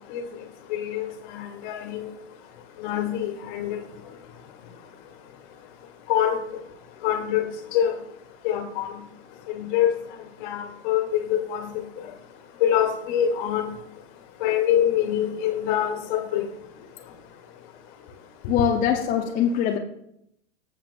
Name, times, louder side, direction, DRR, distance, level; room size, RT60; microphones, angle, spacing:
voice 1, 0.7-1.1 1.3-2.1 2.8-3.8 6.1-6.4 7.0-7.4 7.7-7.9 8.4-8.9 9.5-9.9 10.4-11.7 12.6-13.7 14.4-16.4, left 10 dB, 45° left, 4 dB, 1.7 m, -24 dB
voice 2, 18.5-19.8, left 8 dB, 25° left, 2 dB, 0.7 m, -22 dB
15.0 x 7.3 x 2.3 m, 0.76 s
figure-of-eight pair, 105°, 34 cm